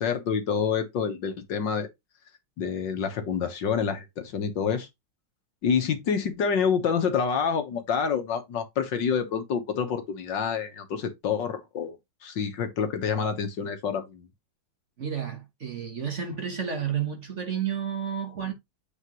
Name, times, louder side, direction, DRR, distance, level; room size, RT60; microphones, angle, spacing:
voice 1, 0.0-1.9 2.6-4.9 5.6-11.9 12.2-14.2, left 6 dB, 65° left, 1.8 m, -27 dB
voice 2, 15.0-18.5, right 8 dB, 40° right, 1.3 m, -31 dB
8.5 x 4.4 x 3.1 m
omnidirectional pair, 2.2 m